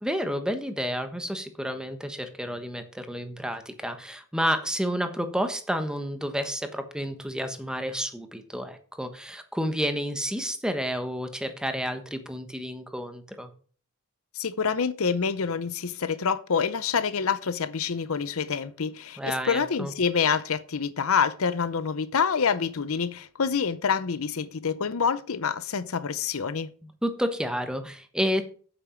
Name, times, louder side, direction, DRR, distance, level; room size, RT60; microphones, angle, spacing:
voice 1, 0.0-13.5 19.2-19.9 27.0-28.4, equal, 5° right, 1.2 m, -30 dB
voice 2, 14.3-26.7, left 6 dB, 65° left, 0.6 m, -27 dB
8.8 x 8.5 x 5.1 m
head